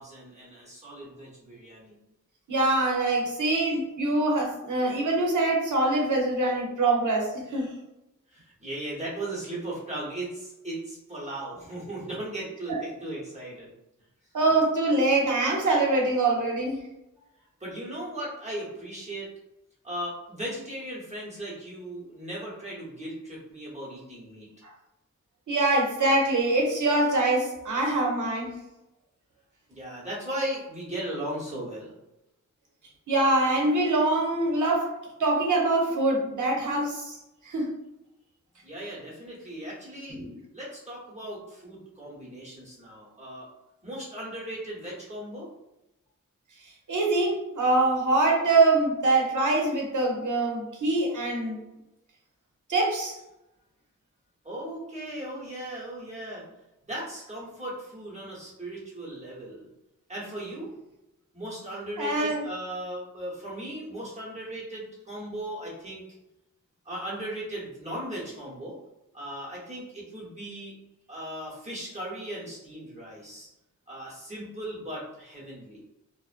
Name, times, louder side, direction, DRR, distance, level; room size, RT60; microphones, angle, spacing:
voice 1, 0.0-2.0 8.3-13.7 17.6-19.3 19.8-24.6 29.7-32.0 38.6-40.2 40.5-43.5 43.8-45.5 54.4-56.4 56.8-59.7 60.1-60.7 61.3-66.0 66.8-68.8 69.1-70.7 71.1-73.5 73.9-75.8, right 1 dB, 20° right, -6 dB, 0.9 m, -37 dB
voice 2, 2.5-7.7 12.7-12.8 14.3-16.8 25.5-28.6 33.1-37.2 37.4-37.8 40.1-40.3 46.9-51.6 52.7-53.2 62.0-62.4, right 2 dB, 70° right, -1 dB, 0.8 m, -24 dB
2.4 x 2.1 x 2.4 m, 0.91 s
wide cardioid pair, 100°, 31 cm